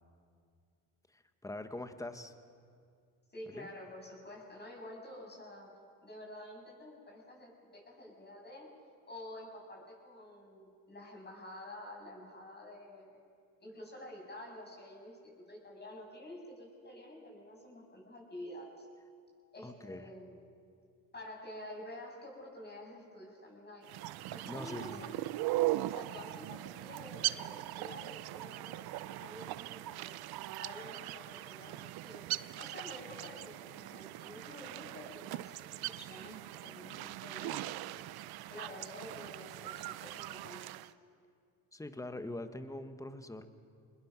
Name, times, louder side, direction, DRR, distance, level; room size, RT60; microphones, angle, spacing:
voice 1, 1.1-2.3 3.5-3.7 19.6-20.1 24.5-25.0 41.7-43.5, left 1 dB, 5° left, 9 dB, 1.5 m, -43 dB
voice 2, 3.3-5.7 6.0-8.7 9.1-13.2 13.6-18.9 19.5-20.4 21.1-23.9 24.3-25.2 25.8-30.1 30.6-32.3 32.6-37.6 37.9-38.0 38.5-40.9, left 1 dB, 25° left, -1 dB, 7.3 m, -49 dB
sound 1, 23.8-40.9, right 16 dB, 55° right, 0.7 m, -40 dB
27.5 x 20.5 x 6.1 m, 2.3 s
supercardioid pair, 85°, 44 cm